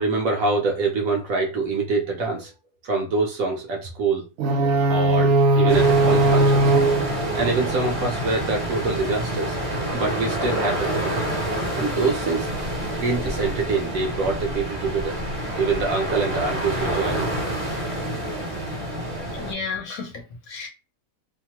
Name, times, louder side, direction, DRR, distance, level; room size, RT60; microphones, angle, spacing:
voice 1, 0.0-2.5 2.8-4.3 4.8-6.7 7.3-9.6 9.9-11.1 11.7-15.2 15.6-17.3 19.1-19.3, right 3 dB, 65° right, 1.0 m, -25 dB
sound 1, 4.4-8.4, right 2 dB, 85° right, 0.6 m, -20 dB
sound 2, 5.7-19.5, right 1 dB, 30° right, 0.6 m, -28 dB
voice 2, 19.4-20.7, left 5 dB, 65° left, 1.1 m, -32 dB
2.9 x 2.1 x 2.9 m
omnidirectional pair, 1.8 m